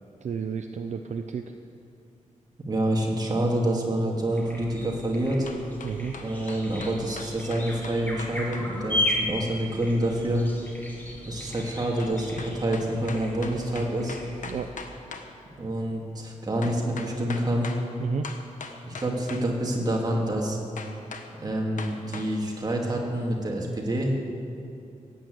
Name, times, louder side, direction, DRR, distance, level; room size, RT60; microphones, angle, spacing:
voice 1, 0.2-1.5 5.8-6.1 14.4-14.7 18.0-18.3, right 6 dB, 60° right, 6 dB, 0.6 m, -32 dB
voice 2, 2.6-5.5 6.2-10.4 11.3-14.2 15.6-17.7 18.8-20.6 21.4-24.1, right 1 dB, 30° right, -1 dB, 2.3 m, -27 dB
sound 1, 4.3-14.7, left 1 dB, 15° left, 2.1 m, -35 dB
sound 2, 5.5-8.7 12.0-15.3 16.6-17.8 18.2-19.5 20.8-21.3 21.8-22.3, left 5 dB, 70° left, 1.2 m, -40 dB
16.5 x 9.0 x 7.9 m, 2.6 s
wide cardioid pair, 160°, 13 cm